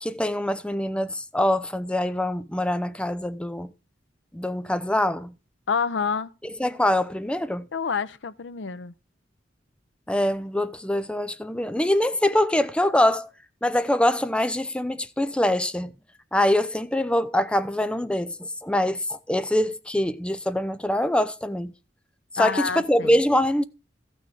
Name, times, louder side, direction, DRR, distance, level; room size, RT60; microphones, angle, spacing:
voice 1, 0.0-3.7 4.3-5.3 6.4-7.7 10.1-13.3 13.6-15.9 16.3-21.7 22.3-23.6, left 1 dB, 5° left, 0.6 m, -24 dB
voice 2, 5.7-6.4 7.7-8.9 22.4-23.1, left 6 dB, 90° left, 0.6 m, -28 dB
14.0 x 6.4 x 4.8 m
head